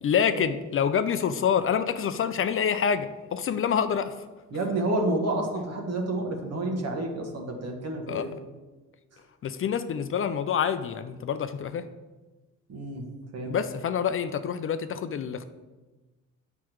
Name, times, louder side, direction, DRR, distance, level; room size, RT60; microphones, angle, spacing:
voice 1, 0.0-4.1 8.1-8.3 9.4-11.8 13.5-15.5, left 7 dB, 45° left, 10 dB, 0.5 m, -27 dB
voice 2, 4.5-8.3 12.7-13.0 13.3-13.5, right 2 dB, 55° right, 2 dB, 1.5 m, -29 dB
8.4 x 6.0 x 3.1 m, 1.2 s
cardioid pair, 90°, 30 cm